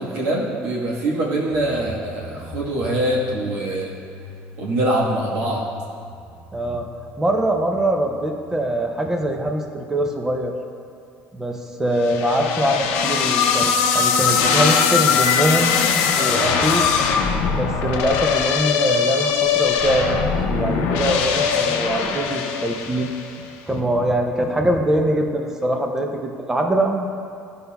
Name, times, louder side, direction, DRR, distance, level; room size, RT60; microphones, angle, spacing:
voice 1, 0.0-3.9 4.6-5.6, right 1 dB, 80° right, -4 dB, 1.4 m, -23 dB
sound 1, 1.5-10.3, equal, 40° left, 1.4 m, -41 dB
voice 2, 6.5-6.9 7.2-10.5 11.3-15.8 16.2-16.9 17.5-20.2 20.5-23.1 23.7-27.0, right 1 dB, 10° right, 3 dB, 0.5 m, -23 dB
sound 2, 12.0-23.3, left 6 dB, 90° left, 0.6 m, -20 dB
12.0 x 5.4 x 2.3 m, 2.4 s
cardioid pair, 155°, 4 cm